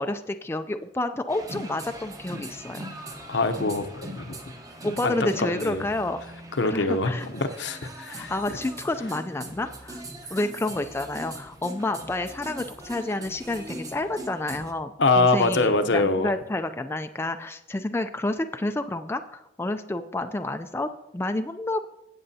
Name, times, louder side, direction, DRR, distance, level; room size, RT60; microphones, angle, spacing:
voice 1, 0.0-2.9 4.8-6.2 6.6-7.3 8.1-10.0 10.3-21.9, left 2 dB, 15° left, 8 dB, 0.3 m, -29 dB
sound 1, 1.3-14.7, right 1 dB, 20° right, 0.9 m, -41 dB
voice 2, 3.3-4.4 5.0-5.8 6.6-8.3 15.0-16.3, left 3 dB, 75° left, 9 dB, 0.7 m, -24 dB
16.0 x 7.7 x 2.7 m, 0.86 s
head